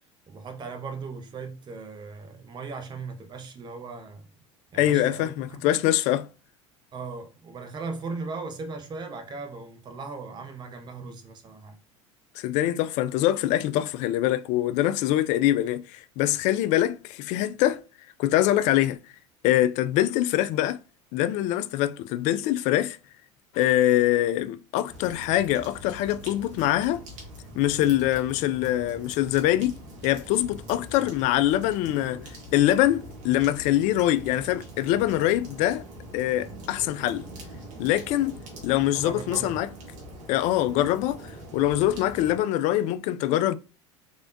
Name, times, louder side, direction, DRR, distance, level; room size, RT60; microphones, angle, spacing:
voice 1, 0.3-4.2 4.7-5.6 6.9-11.8 38.9-39.6, right 4 dB, 30° right, 0.8 m, -38 dB
voice 2, 4.7-6.3 12.4-17.8 18.2-19.0 19.4-20.8 21.1-23.0 23.5-27.0 27.6-29.8 30.0-35.8 36.1-37.2 37.8-38.3 38.6-39.7 40.3-41.2 41.5-43.6, left 13 dB, 50° left, 0.4 m, -24 dB
sound 1, 24.9-42.4, right 1 dB, 55° right, 1.6 m, -43 dB
3.5 x 3.4 x 2.6 m
hypercardioid pair, 75°, 15 cm